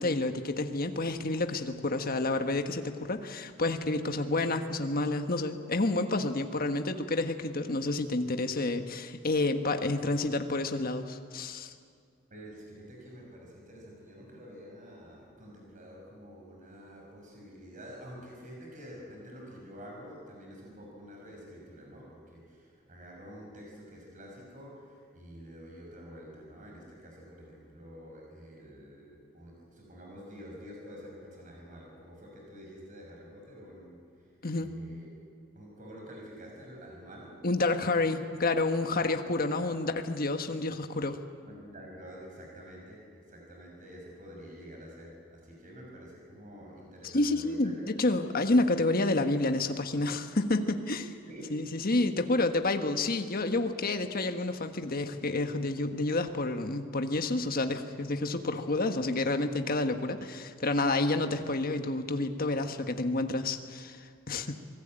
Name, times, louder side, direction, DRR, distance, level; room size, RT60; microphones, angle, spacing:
voice 1, 0.0-11.7 34.4-34.7 37.4-41.2 47.0-51.1 51.5-64.6, left 2 dB, 45° left, 7 dB, 1.5 m, -29 dB
voice 2, 12.3-35.1 35.5-37.4 39.4-39.7 41.5-47.9 51.3-51.4, equal, 40° right, -1 dB, 6.1 m, -48 dB
26.0 x 18.5 x 9.0 m, 2.2 s
head